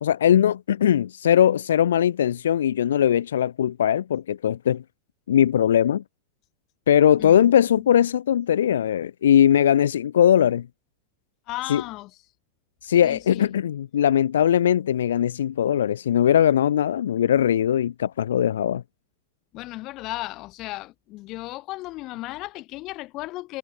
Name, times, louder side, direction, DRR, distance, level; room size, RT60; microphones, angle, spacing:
voice 1, 0.0-4.8 5.3-6.0 6.9-10.7 11.7-11.8 12.8-18.8, left 10 dB, 65° left, 1.1 m, -20 dB
voice 2, 7.2-8.0 11.5-12.1 12.9-13.5 19.5-23.6, left 19 dB, 40° left, 6.8 m, -35 dB
figure-of-eight pair, 90°, 0 cm